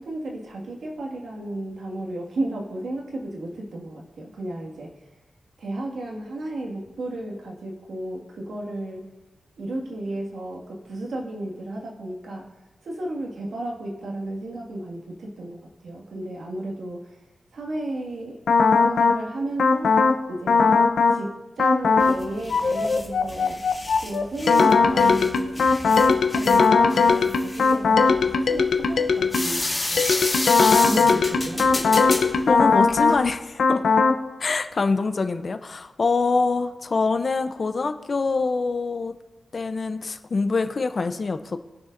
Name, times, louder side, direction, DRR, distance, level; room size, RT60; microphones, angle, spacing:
voice 1, 0.0-4.9 5.6-9.1 9.6-12.4 12.8-17.1 17.5-18.4 18.8-19.9 20.3-20.8 21.1-23.6 24.0-30.1 30.8-31.7, right 1 dB, 80° right, -1 dB, 1.9 m, -33 dB
sound 1, 18.5-19.2 19.6-20.2 20.5-21.2 21.6-22.2 22.5-29.6 30.0-33.2 33.6-34.2, left 4 dB, 85° left, 0.7 m, -19 dB
sound 2, 22.0-33.3, left 2 dB, 20° left, 1.8 m, -31 dB
voice 2, 32.5-33.8 34.4-39.1 39.5-41.6, left 4 dB, 45° left, 9 dB, 0.6 m, -25 dB
20.0 x 6.9 x 2.6 m, 1.0 s
wide cardioid pair, 125°, 0 cm